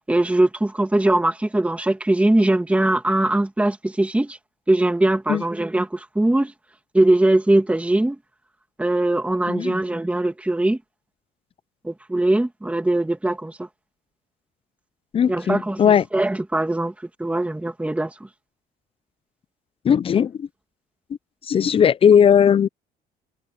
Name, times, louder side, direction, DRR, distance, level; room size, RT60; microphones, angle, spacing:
voice 1, 0.0-4.4 4.7-6.5 6.9-8.2 8.8-10.8 11.8-13.7 15.3-16.9 17.2-18.1, right 1 dB, 10° right, 2.4 m, -21 dB
voice 2, 15.1-16.0 19.8-20.5 21.5-22.7, left 8 dB, 35° left, 0.5 m, -17 dB
cardioid pair, 110°, 17 cm